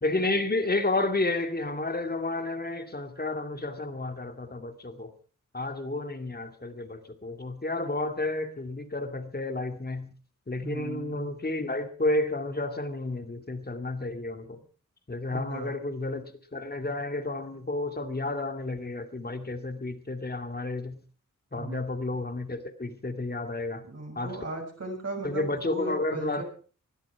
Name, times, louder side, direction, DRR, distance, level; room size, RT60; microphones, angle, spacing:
voice 1, 0.0-5.1 5.5-10.1 10.5-14.6 15.1-21.0 21.5-23.8 24.2-24.4 25.2-26.4, left 2 dB, 30° left, 7 dB, 2.4 m, -31 dB
voice 2, 10.6-11.3 15.3-15.7 21.5-21.8 23.8-26.4, right 2 dB, 55° right, 2 dB, 6.9 m, -37 dB
21.0 x 12.5 x 4.7 m, 0.39 s
wide cardioid pair, 85°, 31 cm